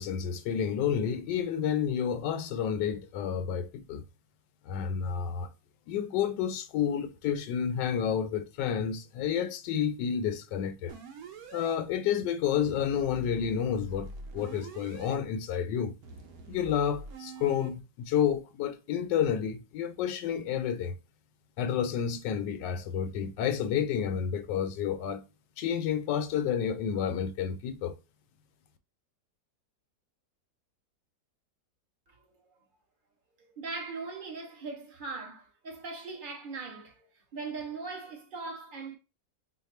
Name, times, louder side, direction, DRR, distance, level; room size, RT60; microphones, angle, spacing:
voice 1, 0.0-4.0 4.6-5.5 5.9-11.0 11.5-15.9 16.5-21.0 21.6-25.2 25.6-28.0, left 8 dB, 75° left, 1.2 m, -30 dB
sound 1, 10.9-11.8 12.6-15.2 16.0-17.7, right 3 dB, 65° right, 1.0 m, -44 dB
voice 2, 33.5-39.0, right 4 dB, 40° right, 0.8 m, -40 dB
3.4 x 2.0 x 4.1 m
omnidirectional pair, 1.9 m